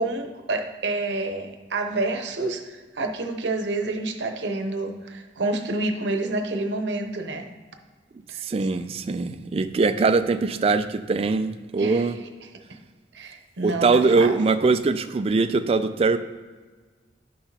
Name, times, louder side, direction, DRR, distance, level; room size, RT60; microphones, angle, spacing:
voice 1, 0.0-7.5 8.3-8.4 11.8-12.1 13.1-14.3, right 2 dB, 75° right, 5 dB, 0.8 m, -28 dB
voice 2, 8.4-12.2 13.6-16.2, right 3 dB, 30° right, 10 dB, 0.3 m, -22 dB
10.0 x 5.8 x 2.8 m, 1.4 s
head